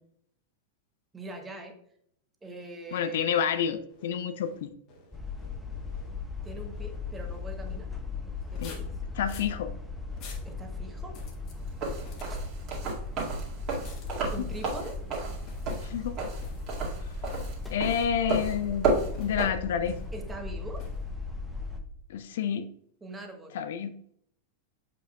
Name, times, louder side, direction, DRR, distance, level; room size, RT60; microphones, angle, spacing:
voice 1, 1.1-1.7 2.4-3.5 6.4-7.9 8.2-9.0 10.4-11.1 12.3-12.4 14.3-15.0 20.1-20.8 23.0-23.5, right 2 dB, 15° right, 3 dB, 1.2 m, -42 dB
voice 2, 2.9-4.7 8.6-8.7 9.2-9.7 15.8-16.1 17.7-20.0 22.1-22.7 23.5-23.9, left 8 dB, 55° left, 11 dB, 0.4 m, -29 dB
sound 1, 3.4-7.8 8.4-9.6 10.1-10.5 11.1-11.6 11.9-12.5 13.8-14.2 14.5-15.0 15.4-15.8 16.4-16.8 17.2-17.7 19.1-19.5 19.8-20.2 20.8-21.1, left 3 dB, 40° left, 1.6 m, -51 dB
sound 2, 5.1-21.8, left 3 dB, 5° left, 0.9 m, -37 dB
sound 3, 11.7-19.5, right 3 dB, 40° right, 2.1 m, -31 dB
7.5 x 5.3 x 2.3 m, 0.69 s
figure-of-eight pair, 90°, 0 cm